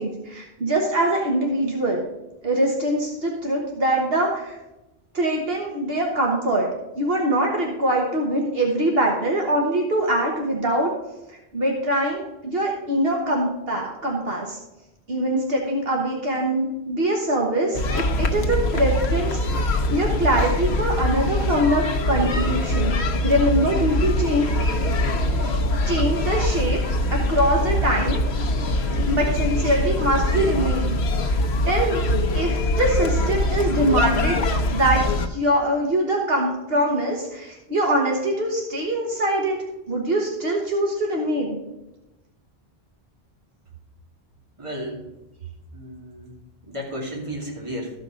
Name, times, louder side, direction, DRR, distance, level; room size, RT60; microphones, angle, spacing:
voice 1, 0.0-2.0 2.4-4.6 5.1-6.7 6.9-10.9 11.5-14.6 15.1-19.6 19.9-23.0 23.2-24.4 25.3-25.6 25.8-26.8 27.1-28.2 29.1-31.0 31.3-31.4 31.6-34.4 34.7-39.6 39.9-41.6, right 1 dB, 65° right, 0 dB, 1.5 m, -23 dB
sound 1, 17.7-35.3, left 1 dB, 80° left, 1.1 m, -23 dB
voice 2, 44.6-45.0 45.7-46.3 46.6-47.9, equal, 30° right, -3 dB, 2.6 m, -33 dB
13.5 x 5.3 x 5.0 m, 0.98 s
omnidirectional pair, 1.1 m